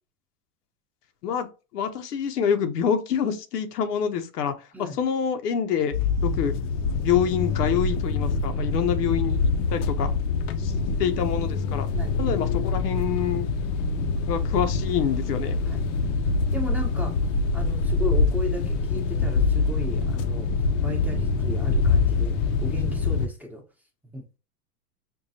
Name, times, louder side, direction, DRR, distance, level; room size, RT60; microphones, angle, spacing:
voice 1, 1.7-5.9 6.2-6.5 7.0-9.4 9.7-10.1 10.6-10.7 11.0-11.9 12.2-13.5 14.3-15.6, left 8 dB, 85° left, 0.7 m, -26 dB
sound 1, 5.9-23.3, left 4 dB, 55° left, 0.6 m, -25 dB
voice 2, 10.4-10.9 11.9-12.1 14.0-14.2 15.6-15.8 16.5-17.2 17.5-20.5 20.8-23.6 24.0-24.2, left 2 dB, 5° right, 0.8 m, -35 dB
5.2 x 2.3 x 2.7 m
hypercardioid pair, 110°, 46 cm